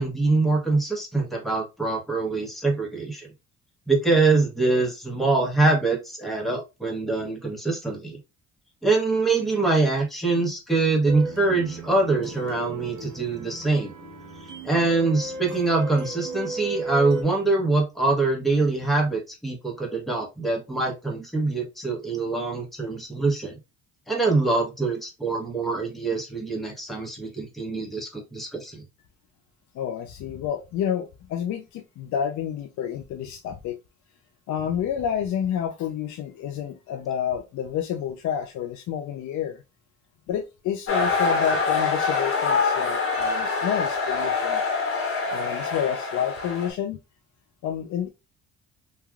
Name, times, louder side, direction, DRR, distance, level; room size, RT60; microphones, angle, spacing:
voice 1, 0.0-3.3 3.9-8.2 8.8-13.9 14.6-23.6 24.1-28.8, right 3 dB, ahead, 0.9 m, -24 dB
sound 1, 11.1-17.2, right 3 dB, 85° right, 0.8 m, -36 dB
voice 2, 29.7-33.8 34.5-39.6 40.3-44.6 45.3-47.0 47.6-48.1, left 9 dB, 70° left, 0.4 m, -29 dB
sound 2, 40.9-46.7, left 4 dB, 45° left, 1.0 m, -25 dB
3.2 x 2.3 x 2.3 m
cardioid pair, 90°, 30 cm